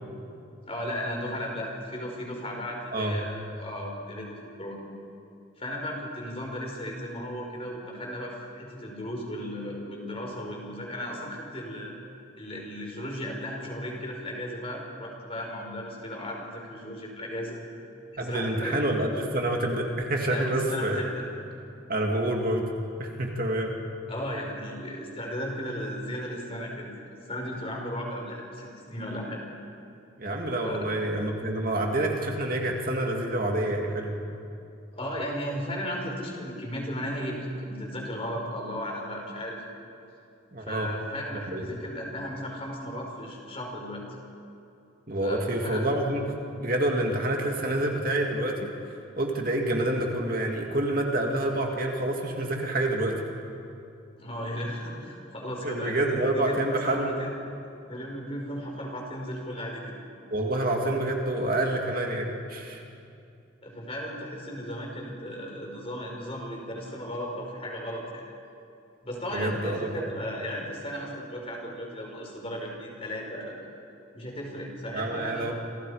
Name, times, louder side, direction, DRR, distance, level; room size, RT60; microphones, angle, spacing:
voice 1, 0.7-4.8 5.6-11.9 12.4-17.6 18.1-18.8 20.3-21.2 24.1-26.9 27.3-29.4 30.6-30.8 34.9-39.6 40.6-44.0 45.2-45.9 54.2-57.3 57.9-59.9 63.6-68.2 69.0-73.7 74.1-75.5, equal, 30° left, 0 dB, 5.1 m, -35 dB
voice 2, 18.2-21.0 21.9-22.7 23.0-23.7 30.2-34.2 40.5-40.9 41.3-41.6 45.1-46.2 46.6-48.7 49.2-53.2 55.6-57.2 60.3-62.8 69.3-70.1 74.9-75.5, right 1 dB, 45° right, 1 dB, 2.4 m, -27 dB
29.0 x 28.0 x 5.1 m, 2.6 s
head